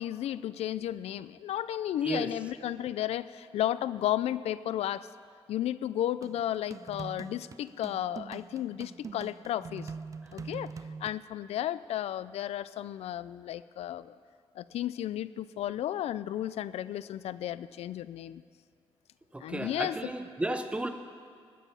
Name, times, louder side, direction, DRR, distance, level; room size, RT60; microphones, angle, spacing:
voice 1, 0.0-5.1 5.5-9.9 10.3-10.7 11.0-14.2 14.6-18.4 19.4-20.1, left 12 dB, 85° left, 16 dB, 0.4 m, -33 dB
sound 1, 6.2-11.2, right 5 dB, 30° right, 0.4 m, -43 dB
voice 2, 19.3-20.9, right 1 dB, 10° right, 8 dB, 0.8 m, -33 dB
19.5 x 9.1 x 5.5 m, 2.1 s
cardioid pair, 120°, 10 cm